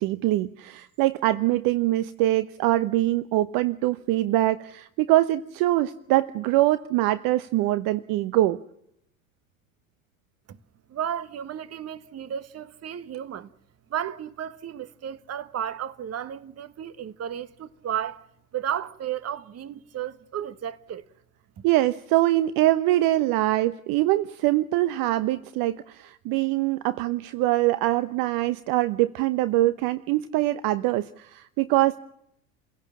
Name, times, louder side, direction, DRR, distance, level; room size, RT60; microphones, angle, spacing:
voice 1, 0.0-8.6 21.6-32.0, right 16 dB, 55° right, 0.9 m, -23 dB
voice 2, 10.9-13.5 13.9-18.2 18.5-21.0, right 10 dB, 35° right, 1.5 m, -33 dB
29.0 x 17.0 x 7.4 m
hypercardioid pair, 75°, 42 cm